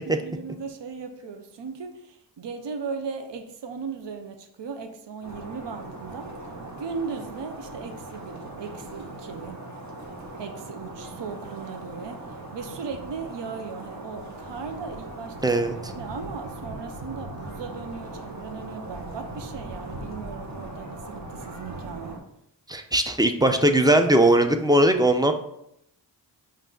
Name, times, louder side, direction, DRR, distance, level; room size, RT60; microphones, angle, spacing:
voice 1, 0.0-6.3 6.8-9.6 10.4-15.5 16.0-22.2, right 5 dB, 75° right, 6 dB, 0.6 m, -37 dB
sound 1, 5.2-22.2, right 2 dB, 40° right, 1.1 m, -39 dB
voice 2, 15.4-15.9 22.7-25.3, right 1 dB, 10° right, 6 dB, 0.4 m, -19 dB
5.2 x 2.5 x 3.8 m, 0.75 s
wide cardioid pair, 50°, 44 cm